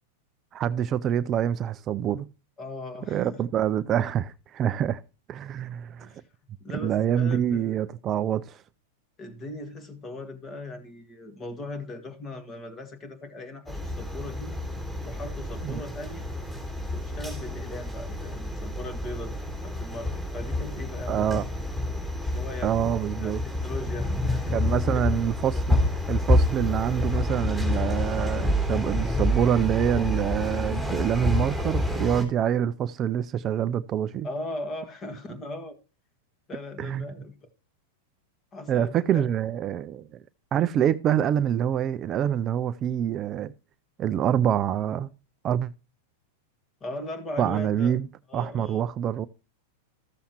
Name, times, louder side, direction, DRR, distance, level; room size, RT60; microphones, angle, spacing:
voice 1, 0.5-2.3 3.1-5.0 5.3-6.1 6.8-8.6 15.6-15.8 21.1-21.4 22.6-23.4 24.5-25.8 26.1-34.3 36.8-37.0 38.7-40.1 40.5-43.5 44.0-45.1 45.4-45.7 47.4-48.1 48.3-49.3, right 10 dB, 30° right, 0.4 m, -26 dB
voice 2, 2.6-3.4 6.0-6.2 6.6-7.8 9.2-14.5 15.0-16.3 16.9-19.3 19.6-21.4 22.3-22.9 23.2-24.6 24.9-25.0 25.5-25.6 34.2-35.8 36.5-37.3 38.5-39.2 46.8-47.9 48.3-48.8, left 2 dB, 25° left, 1.9 m, -38 dB
sound 1, 13.7-32.2, left 1 dB, 10° left, 3.5 m, -28 dB
14.0 x 7.0 x 2.9 m
hypercardioid pair, 125°, 0 cm